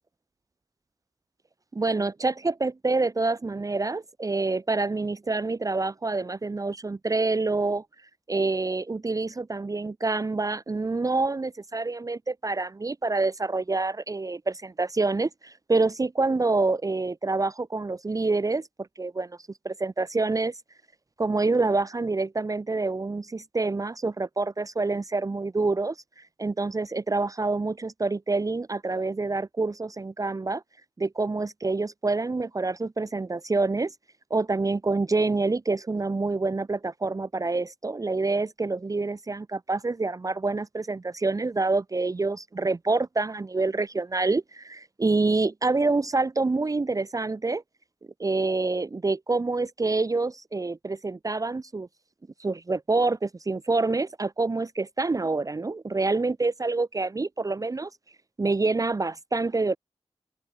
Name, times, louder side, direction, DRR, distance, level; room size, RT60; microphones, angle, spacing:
voice 1, 1.7-7.8 8.3-18.7 19.0-19.4 19.6-20.5 21.2-30.6 31.0-33.9 34.3-47.6 48.2-51.9 52.4-57.9 58.4-59.8, right 3 dB, 35° right, 0.7 m, -27 dB
wide cardioid pair, 75°, 11 cm